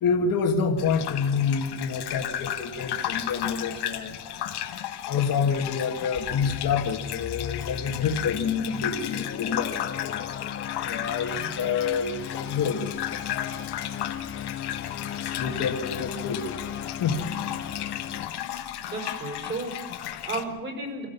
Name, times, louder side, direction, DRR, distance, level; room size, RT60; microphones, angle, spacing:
voice 1, 0.0-4.2 5.1-10.2 10.8-13.7 14.0-14.1 15.2-16.6 17.0-17.2, left 6 dB, 60° left, 4 dB, 2.0 m, -28 dB
Gurgling / Bathtub (filling or washing), 0.8-20.4, left 11 dB, 90° left, 1.4 m, -34 dB
sound 1, 6.2-18.3, left 9 dB, 35° left, 0.6 m, -36 dB
voice 2, 18.9-21.1, right 2 dB, 30° right, 3 dB, 5.0 m, -34 dB
27.0 x 16.5 x 5.8 m, 1.4 s
cardioid pair, 155°, 38 cm